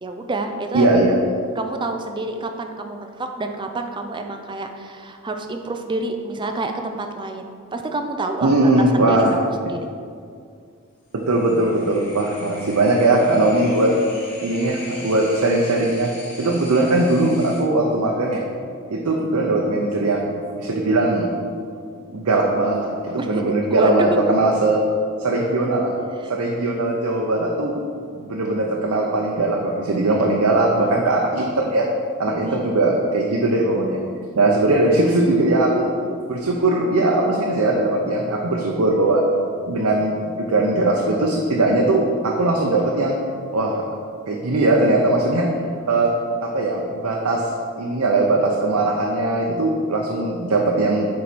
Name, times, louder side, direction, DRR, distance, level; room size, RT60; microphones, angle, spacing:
voice 1, 0.0-0.9 1.6-8.7 9.1-9.4 9.7-9.9 23.2-24.2 32.3-32.7, right 2 dB, 20° right, 5 dB, 0.4 m, -28 dB
voice 2, 0.7-1.2 8.4-9.3 9.6-9.7 11.1-13.9 14.4-16.1 16.4-18.4 18.9-21.3 22.1-24.8 25.2-25.9 26.3-27.7 28.1-31.9 32.2-34.0 34.3-35.9 36.3-39.2 39.7-43.2 43.5-43.8 44.3-45.5 45.9-46.1 46.4-47.5 47.8-51.1, right 2 dB, 75° right, -1 dB, 0.7 m, -20 dB
sound 1, 11.2-17.6, left 1 dB, 65° left, 1.8 m, -40 dB
7.3 x 4.7 x 4.2 m, 2.3 s
head